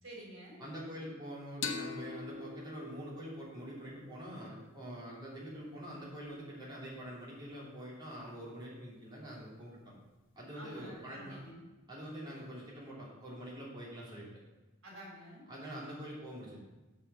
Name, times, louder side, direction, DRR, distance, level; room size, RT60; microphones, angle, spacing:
voice 1, 0.0-0.6 10.6-11.6 14.8-15.4, right 1 dB, 70° right, -2 dB, 3.6 m, -50 dB
voice 2, 0.6-9.9 10.3-11.4 11.9-14.3 15.5-16.6, equal, 20° right, -7 dB, 2.9 m, -45 dB
sound 1, 1.6-5.0, left 4 dB, 65° left, 1.0 m, -43 dB
7.0 x 6.9 x 6.9 m, 1.1 s
head